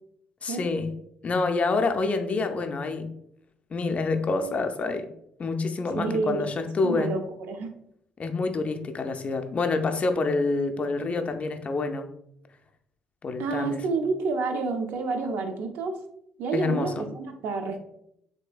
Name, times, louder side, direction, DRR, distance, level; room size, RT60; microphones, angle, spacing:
voice 1, 0.4-0.9 1.2-3.1 3.7-5.1 5.4-7.1 8.2-12.1 13.2-13.8 16.5-17.1, left 3 dB, 35° left, 0.3 m, -27 dB
voice 2, 5.9-6.4 6.8-7.7 13.4-16.0 16.4-17.8, right 4 dB, 60° right, 0.4 m, -29 dB
3.2 x 2.6 x 2.4 m
figure-of-eight pair, 45°, 4 cm